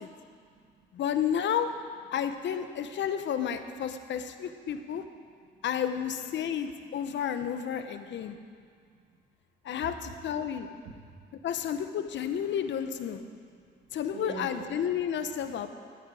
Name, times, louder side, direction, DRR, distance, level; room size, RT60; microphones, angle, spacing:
voice 1, 0.3-0.9 4.9-5.0 5.4-5.6 6.4-6.5 7.0-7.1 8.0-9.2 9.9-10.0 10.7-11.5 13.2-15.7, right 5 dB, 85° right, 1 dB, 1.9 m, -48 dB
voice 2, 0.9-1.7 2.1-5.0 5.6-8.4 9.6-10.7 11.4-13.2 13.9-15.7, left 8 dB, 65° left, 9 dB, 0.9 m, -31 dB
16.0 x 9.4 x 4.8 m, 2.1 s
cardioid pair, 90°, 20 cm